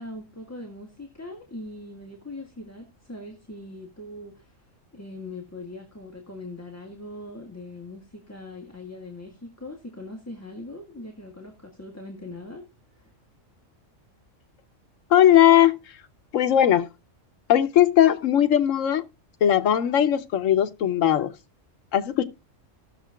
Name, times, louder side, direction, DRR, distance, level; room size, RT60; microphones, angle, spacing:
voice 1, 0.0-4.6 4.9-12.7 12.9-13.1, left 2 dB, 10° left, 1.4 m, -41 dB
voice 2, 15.1-15.8 16.3-16.9 17.5-19.0 19.4-21.3 21.9-22.2, left 11 dB, 80° left, 1.1 m, -19 dB
18.5 x 6.7 x 2.2 m
omnidirectional pair, 1.3 m